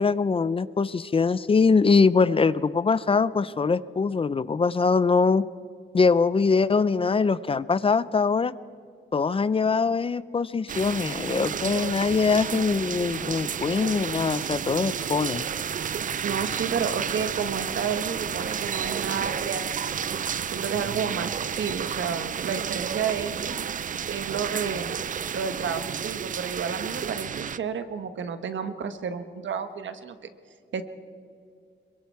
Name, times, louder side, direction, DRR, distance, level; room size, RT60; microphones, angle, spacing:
voice 1, 0.0-5.4 5.9-8.5 9.1-15.5, left 4 dB, 30° left, 17 dB, 0.5 m, -23 dB
sound 1, 10.7-27.6, right 8 dB, 45° right, 0.4 m, -31 dB
voice 2, 16.2-20.0 20.5-23.6 24.1-25.0 25.3-30.2 30.7-30.8, right 6 dB, 85° right, 9 dB, 1.4 m, -31 dB
26.5 x 23.0 x 4.7 m, 2.3 s
wide cardioid pair, 165°, 19 cm